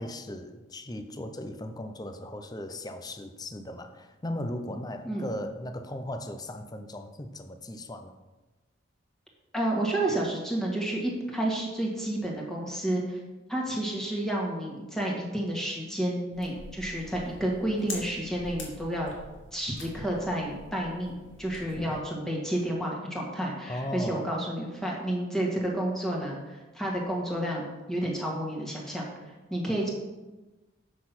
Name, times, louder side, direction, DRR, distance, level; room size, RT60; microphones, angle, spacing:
voice 1, 0.0-8.2 21.8-22.0 23.7-24.3, left 1 dB, 20° left, 7 dB, 0.6 m, -37 dB
voice 2, 9.5-13.2 13.5-19.1 19.5-29.1 29.5-29.9, right 1 dB, ahead, -3 dB, 1.8 m, -30 dB
sound 1, 16.3-22.0, left 2 dB, 80° left, 2.5 m, -45 dB
7.6 x 6.3 x 6.0 m, 1.1 s
head